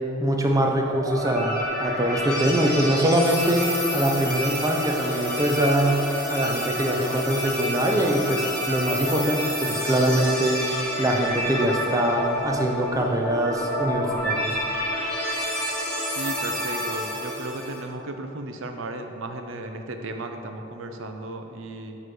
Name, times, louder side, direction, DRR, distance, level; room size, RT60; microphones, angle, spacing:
voice 1, 0.2-3.7 3.9-14.6, right 1 dB, 15° right, 1 dB, 0.5 m, -23 dB
sound 1, 0.9-17.8, equal, 5° left, 1.4 m, -29 dB
voice 2, 16.0-22.0, right 2 dB, 70° right, 6 dB, 0.6 m, -35 dB
7.2 x 3.2 x 5.9 m, 2.8 s
head